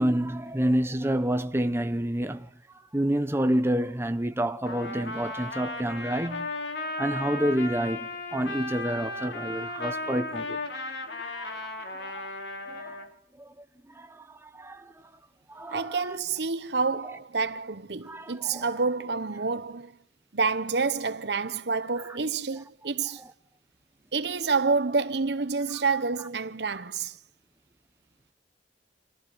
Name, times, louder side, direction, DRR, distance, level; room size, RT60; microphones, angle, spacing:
voice 1, 0.0-2.5 2.9-6.5 7.0-10.6 11.1-11.7 12.0-12.2 12.6-13.1 13.4-13.5 13.9-14.9 15.5-16.2 18.0-18.7, right 1 dB, 15° right, 1.1 m, -29 dB
Trumpet, 4.6-13.1, left 2 dB, 75° left, 4.0 m, -35 dB
voice 2, 15.7-20.0 20.3-23.2 24.1-27.2, right 4 dB, 70° right, 1.0 m, -28 dB
29.5 x 15.0 x 9.7 m
head